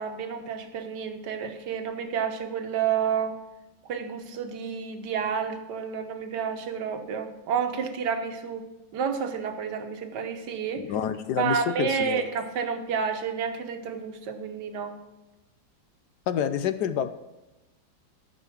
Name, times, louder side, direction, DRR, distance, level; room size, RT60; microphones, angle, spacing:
voice 1, 0.0-3.3 3.9-8.7 8.9-10.8 11.4-14.9, right 7 dB, 65° right, 6 dB, 1.6 m, -30 dB
voice 2, 10.8-12.3 16.3-17.1, left 9 dB, 70° left, 11 dB, 1.1 m, -28 dB
13.5 x 5.5 x 5.9 m, 1.0 s
omnidirectional pair, 2.0 m